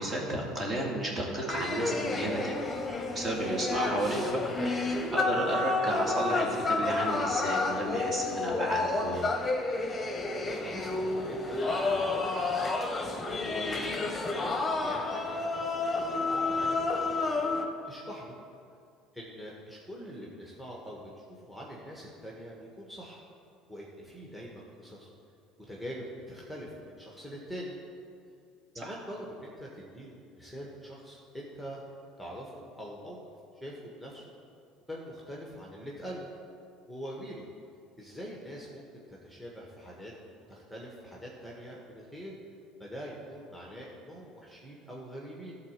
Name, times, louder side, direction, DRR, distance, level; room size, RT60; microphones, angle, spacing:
voice 1, 0.0-2.6 3.1-4.4 5.1-9.3 28.8-28.9, right 1 dB, 30° right, -2 dB, 2.4 m, -32 dB
sound 1, 1.5-17.7, left 3 dB, 20° left, 1.1 m, -30 dB
voice 2, 10.5-13.8 14.2-15.4 15.8-17.2 17.8-18.4 19.1-23.2 23.7-25.1 25.7-27.8 28.7-31.8 32.2-33.2 33.5-34.3 34.9-36.3 36.9-37.4 38.0-40.1 40.5-42.4 42.8-45.6, equal, 5° right, -3 dB, 1.6 m, -44 dB
12.0 x 4.1 x 7.5 m, 2.4 s
supercardioid pair, 85°, 0 cm